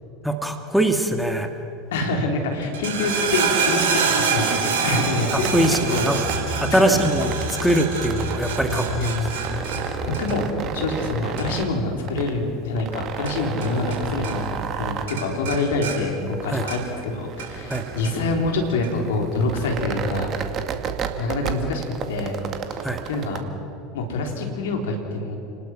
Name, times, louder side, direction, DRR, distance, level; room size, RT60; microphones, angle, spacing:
voice 1, 0.2-1.5 5.3-6.2 6.6-7.3 7.6-9.1 16.5-16.7 17.7-17.8 22.8-23.0, right 1 dB, ahead, 4 dB, 2.1 m, -22 dB
voice 2, 1.9-4.0 4.3-6.1 6.7-7.1 8.7-9.3 10.1-14.5 14.8-20.3 21.2-21.8 22.1-22.4 22.7-23.4 23.9-25.4, left 2 dB, 70° left, 2 dB, 3.7 m, -26 dB
sound 1, 2.6-14.0 14.2-14.8 15.1-17.0 17.4-18.1 18.8-18.9, right 5 dB, 70° right, 4.2 m, -27 dB
sound 2, 5.3-23.4, right 7 dB, 40° right, 2.0 m, -33 dB
30.0 x 19.5 x 6.2 m, 2.9 s
figure-of-eight pair, 75°, 0 cm